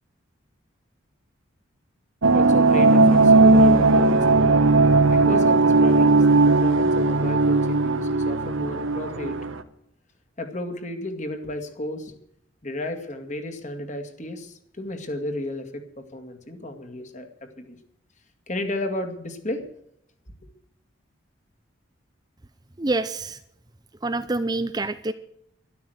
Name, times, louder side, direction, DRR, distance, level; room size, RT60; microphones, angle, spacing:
sound 1, 2.2-9.6, right 3 dB, 75° right, 1.3 m, -17 dB
voice 1, 2.3-4.2 5.1-9.5 10.4-12.1 12.6-17.8 18.5-19.7, left 1 dB, 35° left, 6 dB, 2.2 m, -33 dB
voice 2, 22.8-23.4 24.0-25.1, right 2 dB, 20° right, 10 dB, 0.6 m, -26 dB
12.5 x 12.0 x 7.9 m, 0.74 s
head